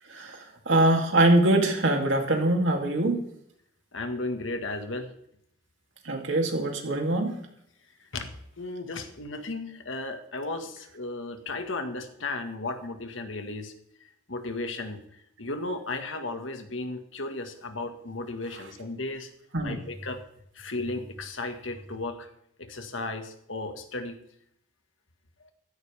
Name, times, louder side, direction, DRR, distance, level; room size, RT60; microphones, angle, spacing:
voice 1, 0.1-3.2 6.0-7.4 19.5-19.8, right 1 dB, 75° right, 2 dB, 2.9 m, -23 dB
voice 2, 3.9-5.1 8.1-13.7 14.0-15.0 15.4-19.3 19.6-20.2 20.6-22.3 22.6-24.2, left 2 dB, 80° left, 6 dB, 1.8 m, -35 dB
15.0 x 13.5 x 3.5 m, 0.72 s
head